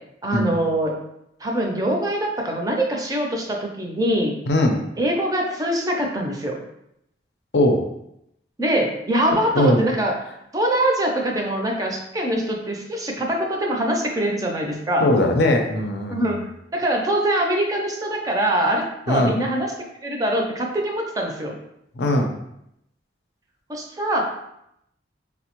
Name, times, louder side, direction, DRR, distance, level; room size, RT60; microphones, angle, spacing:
voice 1, 0.2-1.0 1.4-4.3 5.0-6.6 8.6-10.1 10.5-15.1 16.1-16.5 16.7-19.7 20.0-21.6 23.7-24.2, right 1 dB, 20° right, 1 dB, 0.4 m, -23 dB
voice 2, 4.5-4.8 7.5-7.8 9.5-9.8 15.0-16.2 19.1-19.3 22.0-22.3, left 1 dB, 70° left, 3 dB, 0.5 m, -19 dB
4.3 x 2.0 x 2.9 m, 0.79 s
head